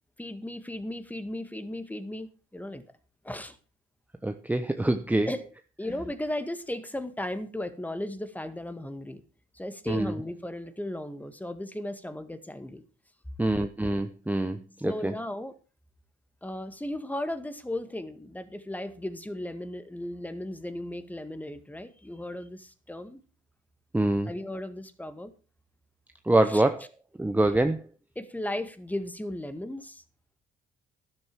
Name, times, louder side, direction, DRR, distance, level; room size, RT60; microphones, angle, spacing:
voice 1, 0.2-2.8 3.2-3.6 5.3-5.5 5.8-9.2 9.5-12.8 14.8-15.5 16.4-23.2 24.3-25.3 26.5-26.6 28.2-30.0, left 1 dB, 10° left, 11 dB, 1.9 m, -36 dB
voice 2, 4.2-5.3 9.9-10.1 13.4-15.1 23.9-24.3 26.3-26.9 27.2-27.8, right 1 dB, 10° right, 8 dB, 1.1 m, -25 dB
12.5 x 12.0 x 4.7 m, 0.34 s
cardioid pair, 90°, 20 cm